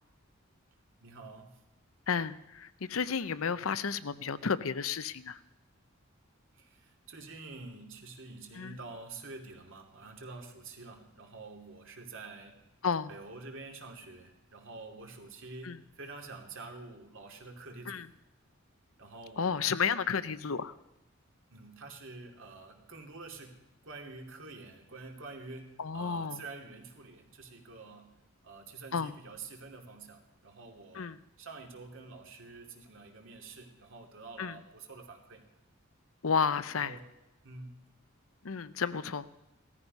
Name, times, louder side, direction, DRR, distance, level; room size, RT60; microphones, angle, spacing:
voice 1, 1.0-1.6 6.5-12.6 13.1-18.0 19.0-19.8 21.5-28.1 28.4-31.1 31.4-35.4 36.8-37.1 37.4-37.8, right 3 dB, 65° right, 3 dB, 2.7 m, -47 dB
voice 2, 2.1-5.4 8.6-8.8 12.8-13.1 15.6-15.8 17.9-18.1 19.4-20.7 25.8-26.4 28.9-29.2 30.9-31.2 34.4-34.6 36.2-37.0 38.4-39.3, left 6 dB, 90° left, 15 dB, 0.7 m, -32 dB
18.0 x 14.0 x 5.4 m, 0.94 s
head